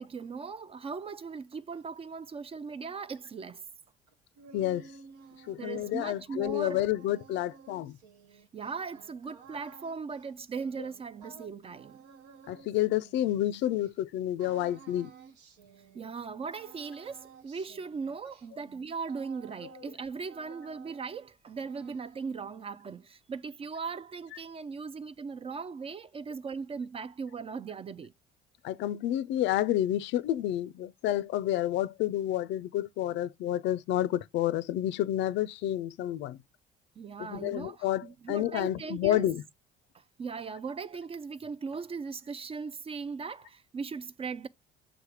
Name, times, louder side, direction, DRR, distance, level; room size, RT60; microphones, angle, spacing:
voice 1, 0.0-3.6 5.6-6.8 8.5-12.0 15.9-28.1 37.0-39.3 39.9-44.5, right 5 dB, 30° right, 0.4 m, -39 dB
sound 1, 4.1-13.9 14.4-16.3 16.5-20.0 20.3-21.3 21.6-22.6, right 5 dB, 85° right, 0.8 m, -53 dB
voice 2, 4.5-4.9 5.5-8.0 12.5-15.1 19.8-19.9 24.3-24.4 28.6-36.4 37.2-39.4, left 13 dB, 60° left, 0.4 m, -29 dB
6.0 x 3.3 x 4.9 m
hypercardioid pair, 60°, 21 cm